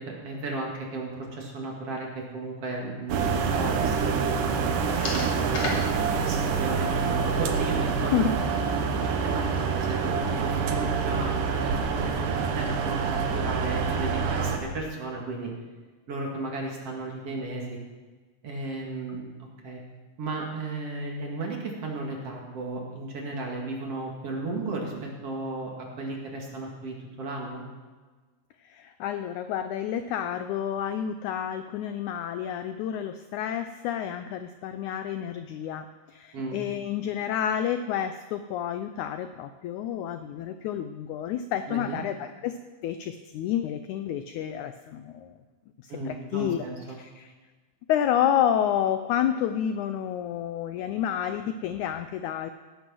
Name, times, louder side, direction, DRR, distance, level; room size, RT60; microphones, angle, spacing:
voice 1, 0.0-5.8 6.3-8.5 9.0-12.3 12.5-15.5 16.1-17.8 18.4-19.8 20.2-27.6 36.3-36.6 41.7-42.0 45.9-47.0, right 2 dB, 45° right, -1 dB, 2.8 m, -34 dB
sound 1, 3.1-14.6, right 5 dB, 70° right, 2.5 m, -26 dB
sound 2, 3.9-9.6, left 3 dB, 50° left, 2.8 m, -40 dB
voice 2, 28.6-42.6 42.8-45.4 45.8-46.7 47.0-47.3 47.9-52.5, left 9 dB, 85° left, 9 dB, 1.7 m, -29 dB
17.0 x 8.4 x 6.2 m, 1.3 s
omnidirectional pair, 4.1 m